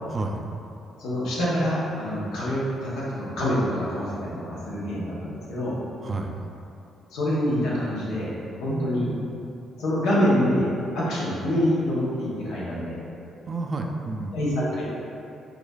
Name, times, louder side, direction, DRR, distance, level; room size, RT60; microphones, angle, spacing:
voice 1, 1.0-5.8 7.1-8.3 8.6-9.1 9.8-10.7 10.9-13.0 14.3-14.8, equal, 90° left, -7 dB, 0.9 m, -26 dB
voice 2, 6.0-6.4 8.7-9.4 13.5-14.5, right 2 dB, 40° right, 3 dB, 0.3 m, -31 dB
4.8 x 2.4 x 2.3 m, 2.6 s
cardioid pair, 90°, 0 cm